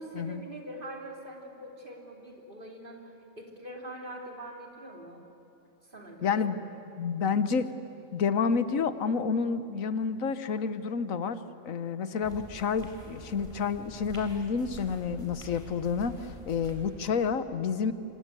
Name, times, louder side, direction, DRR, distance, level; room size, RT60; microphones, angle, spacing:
voice 1, 0.0-5.2 5.8-6.5, right 1 dB, 40° right, 1 dB, 3.5 m, -43 dB
voice 2, 6.2-6.6 7.0-7.7 8.1-17.9, left 5 dB, 85° left, 12 dB, 1.5 m, -29 dB
sound 1, 12.2-17.3, right 1 dB, 20° right, 4.2 m, -47 dB
28.0 x 25.5 x 8.4 m, 2.9 s
omnidirectional pair, 1.4 m